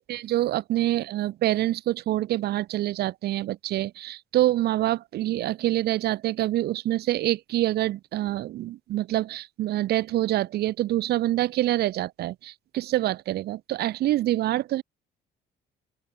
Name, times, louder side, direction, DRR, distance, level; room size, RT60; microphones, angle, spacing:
voice 1, 0.0-14.8, right 14 dB, 70° right, 3.7 m, -26 dB
open air
cardioid pair, 110°, 17 cm